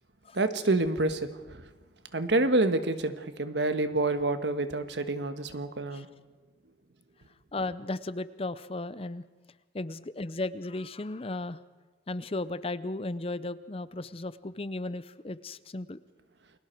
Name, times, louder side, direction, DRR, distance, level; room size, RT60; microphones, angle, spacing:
voice 1, 0.3-1.6 2.1-6.1, right 2 dB, 75° right, 10 dB, 1.4 m, -28 dB
voice 2, 7.5-9.2 9.7-11.6 12.1-16.0, left 2 dB, 30° left, 15 dB, 0.6 m, -35 dB
29.5 x 21.5 x 4.6 m, 1.3 s
head